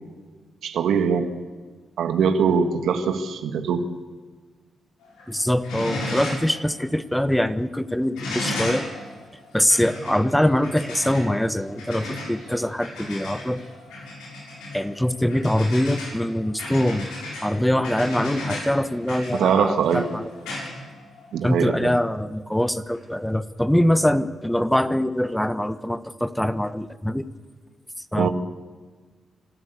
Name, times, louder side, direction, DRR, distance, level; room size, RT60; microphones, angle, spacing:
voice 1, 0.6-1.3 2.0-3.8 19.3-20.1 21.3-21.9 28.1-28.3, right 6 dB, 75° right, 7 dB, 1.9 m, -22 dB
sound 1, 5.0-5.3 5.6-6.6 6.9-7.0 8.2-21.5 22.9-23.0, left 1 dB, 80° left, 6.0 m, -34 dB
voice 2, 5.3-8.9 9.5-13.6 14.7-17.1 17.4-20.3 21.4-27.3 28.1-28.3, left 1 dB, 5° left, 12 dB, 1.3 m, -23 dB
26.0 x 13.0 x 8.4 m, 1.4 s
hypercardioid pair, 45°, 0 cm